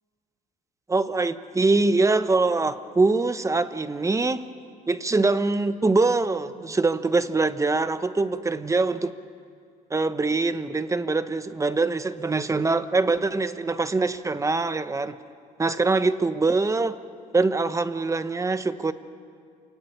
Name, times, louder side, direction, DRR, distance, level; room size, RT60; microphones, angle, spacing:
voice 1, 0.9-4.4 4.9-9.2 9.9-15.2 15.6-17.0 17.3-18.9, right 3 dB, 20° right, 12 dB, 0.9 m, -23 dB
27.5 x 16.5 x 9.6 m, 2.2 s
cardioid pair, 110°, 17 cm